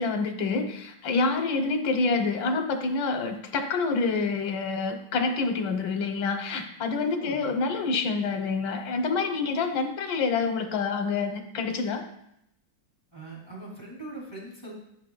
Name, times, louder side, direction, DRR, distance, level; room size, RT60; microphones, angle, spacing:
voice 1, 0.0-12.0, left 4 dB, 75° left, 5 dB, 1.7 m, -27 dB
voice 2, 6.9-7.6 13.1-14.7, right 2 dB, 15° left, -5 dB, 2.8 m, -41 dB
13.5 x 6.6 x 2.3 m, 0.76 s
omnidirectional pair, 2.1 m